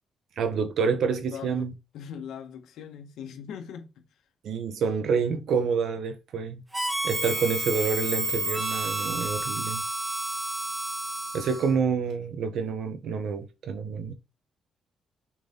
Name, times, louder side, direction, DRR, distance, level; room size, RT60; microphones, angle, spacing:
voice 1, 0.4-1.7 4.4-6.6 7.0-9.8 11.3-14.1, right 5 dB, 65° right, 1.3 m, -28 dB
voice 2, 1.3-4.2, left 8 dB, 85° left, 1.8 m, -41 dB
Harmonica, 6.7-11.8, right 2 dB, 15° right, 1.3 m, -30 dB
7.2 x 4.7 x 3.9 m
cardioid pair, 145°, 0 cm